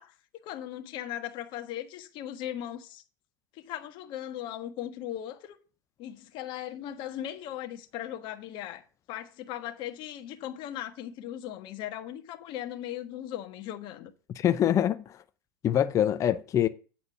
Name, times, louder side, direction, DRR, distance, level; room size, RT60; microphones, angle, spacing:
voice 1, 0.0-3.0 3.5-5.6 6.0-14.1, left 11 dB, 50° left, 1.4 m, -38 dB
voice 2, 14.4-15.2 15.6-16.7, left 10 dB, 30° left, 0.6 m, -24 dB
8.6 x 4.3 x 6.9 m
supercardioid pair, 125°, 11 cm